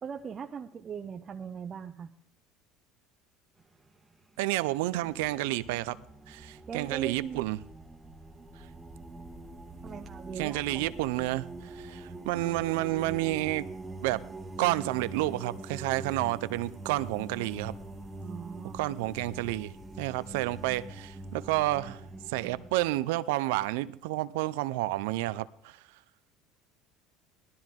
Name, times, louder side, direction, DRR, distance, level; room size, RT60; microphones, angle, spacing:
voice 1, 0.0-2.1 6.7-7.4 9.8-10.9 18.2-18.8, right 7 dB, 35° right, 0.7 m, -40 dB
sound 1, 3.6-4.0 4.5-23.0, right 2 dB, 15° right, 1.3 m, -44 dB
voice 2, 4.4-6.0 6.3-7.6 10.4-13.7 14.0-14.2 14.6-17.7 18.7-19.7 20.0-22.0 22.3-25.8, right 17 dB, 85° right, 0.6 m, -30 dB
18.0 x 12.5 x 3.7 m
supercardioid pair, 105°, 0 cm